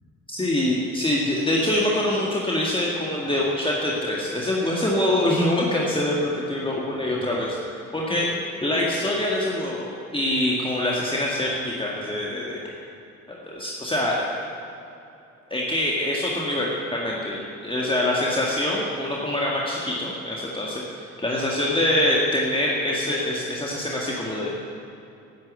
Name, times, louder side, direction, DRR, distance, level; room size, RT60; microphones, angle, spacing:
voice 1, 0.3-7.6 7.9-8.3 8.6-12.6 13.3-14.4 15.5-24.6, left 1 dB, 15° left, -4 dB, 1.9 m, -24 dB
10.0 x 9.7 x 8.1 m, 2.7 s
figure-of-eight pair, 45°, 38 cm